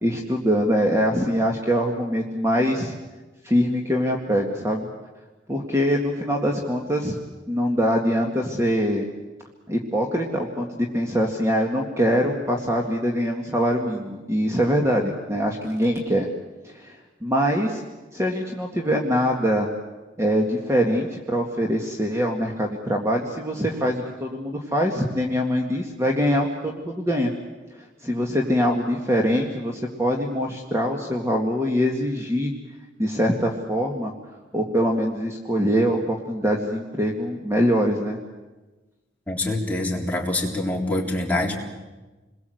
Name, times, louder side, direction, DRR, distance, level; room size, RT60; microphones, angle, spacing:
voice 1, 0.0-2.9 3.4-4.9 5.5-7.2 7.5-9.1 9.7-16.3 16.6-17.8 18.1-19.7 20.2-27.3 27.7-32.5 33.0-34.1 34.5-38.2, equal, 15° right, 1 dB, 2.0 m, -23 dB
voice 2, 39.3-41.6, left 1 dB, 10° left, -2 dB, 3.9 m, -25 dB
28.5 x 22.0 x 8.0 m, 1.2 s
head